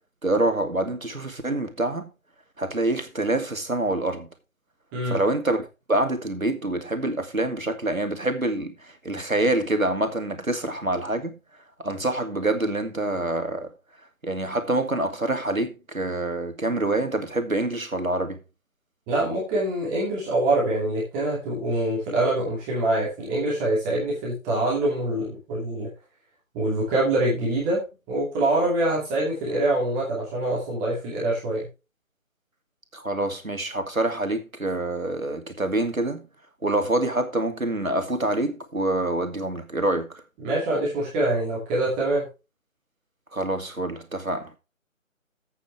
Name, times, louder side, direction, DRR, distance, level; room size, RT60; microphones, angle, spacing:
voice 1, 0.2-2.1 2.6-4.3 5.1-8.7 9.0-11.3 11.8-13.7 14.2-18.4 32.9-36.2 36.6-40.1 43.3-44.5, right 2 dB, 85° right, 2.5 m, -26 dB
voice 2, 19.1-25.9 26.5-31.7 40.4-42.2, right 1 dB, 10° right, 2.5 m, -25 dB
12.0 x 8.4 x 3.3 m
figure-of-eight pair, 155°, 40 cm